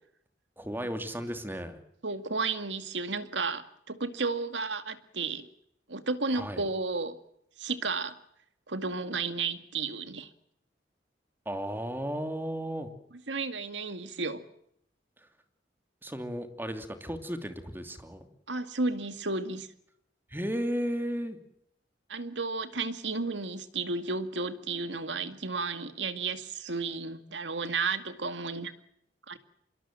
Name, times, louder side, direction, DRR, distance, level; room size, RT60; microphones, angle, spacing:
voice 1, 0.6-1.8 6.3-6.6 11.4-12.9 15.2-15.3 16.0-18.3 20.3-21.4, equal, 10° right, 7 dB, 2.8 m, -34 dB
voice 2, 2.0-5.5 5.9-7.2 7.6-8.2 8.7-10.3 13.3-14.4 18.5-19.7 22.1-28.7 29.3-29.4, right 4 dB, 85° right, 10 dB, 2.2 m, -33 dB
25.5 x 22.5 x 7.6 m, 0.73 s
head